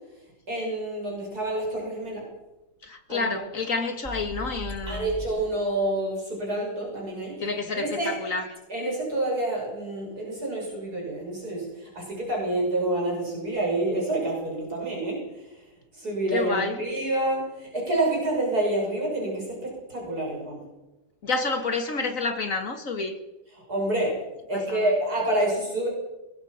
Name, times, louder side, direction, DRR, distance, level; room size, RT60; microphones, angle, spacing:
voice 1, 0.5-2.2 3.1-3.4 4.9-7.3 7.7-8.2 8.7-15.6 15.9-20.6 23.5-24.1 24.5-25.9, right 1 dB, 50° right, 6.9 m, -28 dB
voice 2, 2.8-5.1 7.4-8.5 16.3-16.8 21.2-23.2 24.5-24.8, left 4 dB, 45° left, 2.3 m, -29 dB
sound 1, 4.0-5.3, equal, 15° right, 3.1 m, -37 dB
22.5 x 22.0 x 5.8 m
omnidirectional pair, 2.1 m